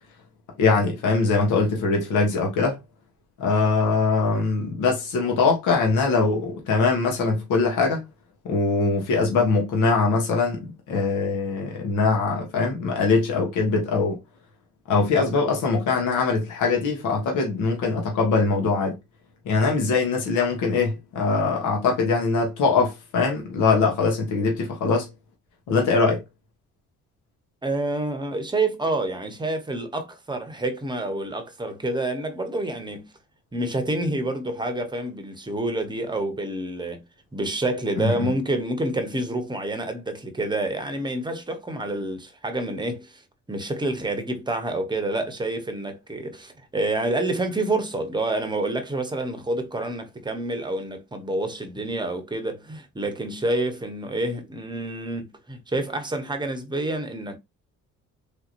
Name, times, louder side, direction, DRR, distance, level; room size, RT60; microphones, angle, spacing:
voice 1, 0.6-2.8 3.4-8.0 8.4-14.2 14.9-19.0 19.4-25.1 25.7-26.2 38.0-38.3, left 4 dB, 85° left, 1.2 m, -22 dB
voice 2, 27.6-33.1 33.5-37.0 37.3-43.2 43.5-57.4, right 2 dB, 15° right, 0.8 m, -28 dB
3.4 x 2.8 x 2.5 m
cardioid pair, 90°, 30 cm